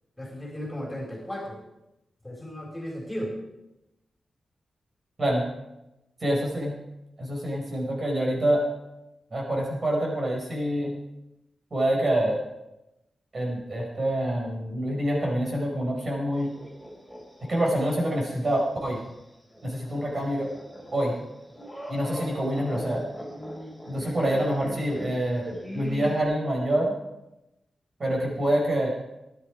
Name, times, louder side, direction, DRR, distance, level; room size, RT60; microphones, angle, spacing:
voice 1, 0.2-1.6 2.2-3.4, equal, 10° left, -2 dB, 4.4 m, -35 dB
voice 2, 6.2-6.8 7.2-8.6 9.3-11.0 11.7-12.4 13.3-16.5 17.4-19.0 19.6-20.5 20.9-21.1 21.9-23.0 23.9-26.9 28.0-28.9, right 1 dB, 45° right, -1 dB, 4.8 m, -26 dB
sound 1, 16.3-17.9 18.3-18.4 19.5-26.2, equal, 5° right, 4.0 m, -40 dB
19.0 x 11.0 x 4.9 m, 0.94 s
wide cardioid pair, 100°, 0 cm